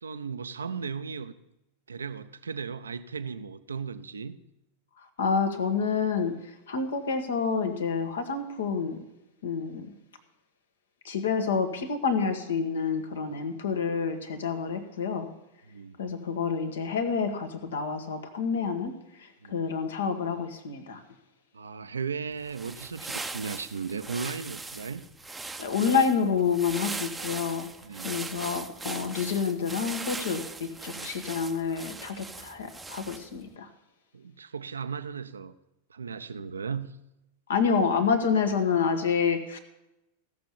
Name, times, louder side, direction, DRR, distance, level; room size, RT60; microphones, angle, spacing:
voice 1, 0.0-1.3 1.9-4.4 13.3-13.4 15.7-16.0 19.4-19.6 21.5-25.1 27.8-28.1 30.9-31.1 34.1-35.5 35.9-37.0, right 5 dB, 70° right, 12 dB, 0.6 m, -36 dB
voice 2, 5.0-9.0 9.4-9.9 11.0-15.3 16.0-18.9 19.2-21.0 25.6-27.7 28.0-33.7 37.5-39.6, left 5 dB, 65° left, 7 dB, 1.5 m, -28 dB
sound 1, 22.4-33.4, right 3 dB, 10° right, 0.7 m, -40 dB
16.5 x 6.9 x 7.2 m, 0.91 s
figure-of-eight pair, 90°, 0 cm